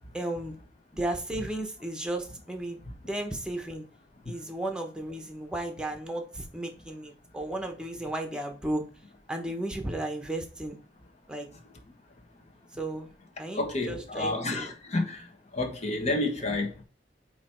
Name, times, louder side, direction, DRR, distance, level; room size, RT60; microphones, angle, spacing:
voice 1, 0.1-0.6 0.9-3.9 4.2-8.8 9.3-10.8 11.3-11.5 12.8-13.1 13.4-14.7, right 1 dB, 5° right, 1.1 m, -34 dB
voice 2, 13.5-16.8, left 2 dB, 40° left, 1.5 m, -30 dB
8.3 x 3.1 x 4.5 m
head